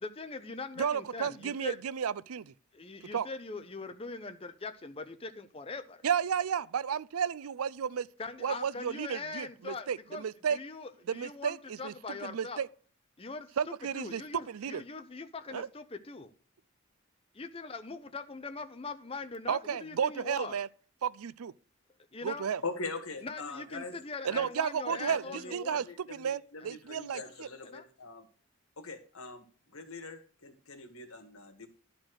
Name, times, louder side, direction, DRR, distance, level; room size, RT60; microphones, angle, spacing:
voice 1, 0.0-1.8 2.7-6.0 8.2-10.2 10.5-12.6 13.2-13.5 13.9-16.3 17.3-20.6 22.1-22.5 23.2-25.8 26.6-26.7 27.2-27.3 27.6-27.9, left 3 dB, 25° left, 0.6 m, -42 dB
voice 2, 0.8-2.5 3.1-3.3 6.0-8.1 8.4-10.6 11.1-12.7 13.6-14.8 15.5-15.7 19.5-20.7 21.0-21.5 22.2-22.6 24.2-27.5, right 7 dB, 85° right, 0.4 m, -33 dB
voice 3, 22.6-23.9 24.3-24.5 24.9-28.3 28.8-29.4 29.7-31.7, left 3 dB, 80° left, 1.7 m, -42 dB
11.5 x 4.3 x 6.3 m
head